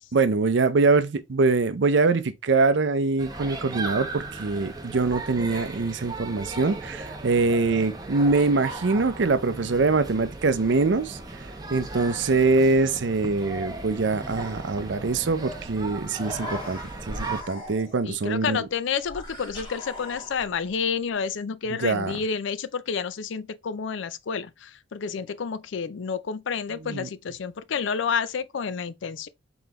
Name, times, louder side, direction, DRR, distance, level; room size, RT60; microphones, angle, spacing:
voice 1, 0.1-11.2 11.7-16.8 17.1-18.7 21.7-22.2 26.8-27.1, right 3 dB, 70° right, 0.5 m, -23 dB
sound 1, 3.2-17.4, right 2 dB, 20° right, 0.7 m, -37 dB
Human voice, 16.1-18.1 19.0-20.7, left 1 dB, 25° left, 1.4 m, -39 dB
voice 2, 18.0-29.3, left 6 dB, 80° left, 0.4 m, -30 dB
3.9 x 3.9 x 2.9 m
head